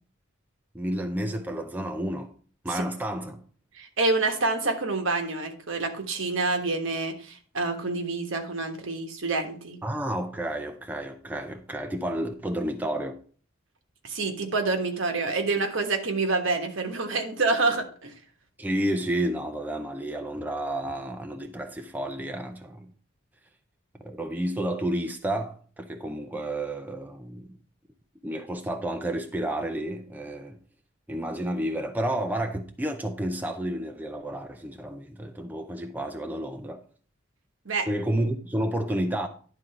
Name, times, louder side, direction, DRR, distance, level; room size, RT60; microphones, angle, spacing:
voice 1, 0.7-2.3 2.6-3.4 9.8-13.2 18.6-22.9 24.0-27.5 28.2-30.6 31.1-36.8 37.9-39.3, right 1 dB, 10° right, 0.5 m, -31 dB
voice 2, 3.7-9.8 14.0-18.1 37.6-37.9, right 3 dB, 65° right, 1.3 m, -27 dB
10.5 x 3.8 x 5.6 m
head